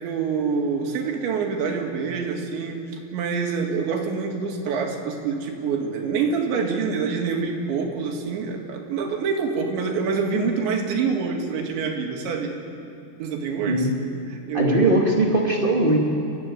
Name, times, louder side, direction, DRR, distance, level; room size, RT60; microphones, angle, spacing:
voice 1, 0.0-2.8 3.1-12.6 13.2-13.9 14.3-15.0, right 5 dB, 90° right, 2 dB, 4.6 m, -26 dB
voice 2, 14.5-16.0, right 1 dB, 65° right, -1 dB, 0.5 m, -20 dB
29.0 x 14.5 x 9.5 m, 2.8 s
omnidirectional pair, 5.0 m